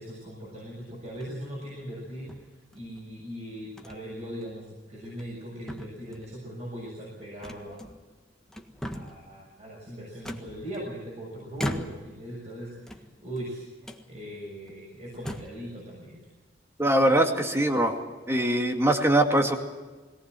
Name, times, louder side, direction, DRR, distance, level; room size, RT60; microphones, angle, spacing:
voice 1, 0.0-2.5 2.7-7.8 8.9-16.2, equal, 40° right, -4 dB, 6.8 m, -40 dB
sound 1, 1.1-1.5 2.3-3.0 3.8-4.0 4.4-4.5 5.0-5.4 5.7-6.4 7.4-8.2 8.5-9.3 10.2-11.1 11.6-12.2 12.8-13.5 13.8-14.1 14.7-14.8 15.1-15.6, equal, 5° left, 1.6 m, -38 dB
voice 2, 16.8-18.0 18.3-19.6, right 1 dB, 15° right, 4 dB, 2.3 m, -22 dB
22.0 x 18.5 x 7.8 m, 1.3 s
head